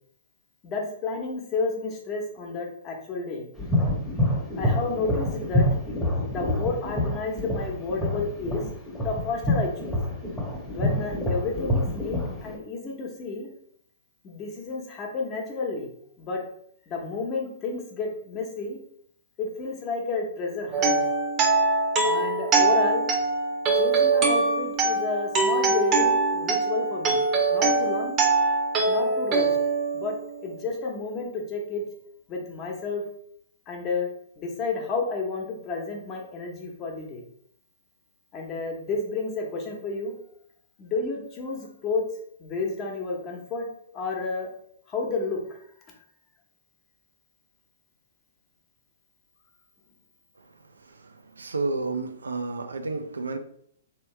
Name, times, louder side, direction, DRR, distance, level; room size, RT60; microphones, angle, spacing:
voice 1, 0.6-3.5 4.6-5.7 6.3-8.7 9.0-10.0 10.7-13.5 14.2-15.9 16.2-16.4 16.9-18.8 19.4-21.0 22.0-23.0 23.7-28.2 28.9-29.6 29.9-31.8 32.3-33.0 33.7-34.1 34.4-37.2 38.3-40.1 40.8-42.0 42.4-43.7 43.9-44.5 44.9-45.6, left 3 dB, 30° left, 1 dB, 1.0 m, -31 dB
sound 1, 3.6-12.6, left 1 dB, 5° left, 1.0 m, -26 dB
sound 2, 20.7-30.6, right 3 dB, 30° right, 0.8 m, -23 dB
voice 2, 51.4-53.4, right 3 dB, 90° right, 8 dB, 0.4 m, -30 dB
3.4 x 3.0 x 3.2 m, 0.66 s
hypercardioid pair, 125°, 0 cm